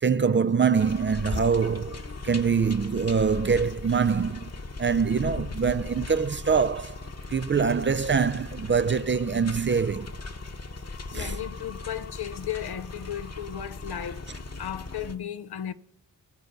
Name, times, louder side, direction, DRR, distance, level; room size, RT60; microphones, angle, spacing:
voice 1, 0.0-4.5 4.8-7.0 7.3-10.2 11.1-11.4, right 6 dB, 30° right, 0.4 m, -24 dB
sound 1, 0.8-15.1, left 3 dB, 40° left, 1.2 m, -38 dB
voice 2, 11.1-15.7, left 10 dB, 75° left, 0.7 m, -35 dB
20.5 x 6.8 x 5.3 m
cardioid pair, 50°, 39 cm